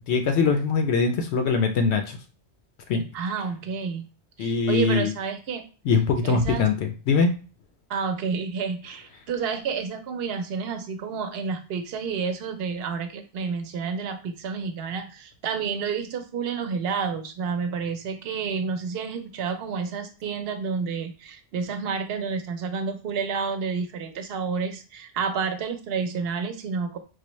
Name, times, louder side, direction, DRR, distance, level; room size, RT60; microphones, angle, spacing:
voice 1, 0.1-2.2 2.9-3.0 4.4-5.1 5.9-7.3, left 5 dB, 85° left, 5 dB, 0.9 m, -22 dB
voice 2, 3.1-4.0 4.4-5.7 6.2-6.7 7.9-27.0, right 5 dB, 70° right, 8 dB, 0.8 m, -30 dB
4.8 x 2.1 x 3.0 m, 0.34 s
omnidirectional pair, 1.1 m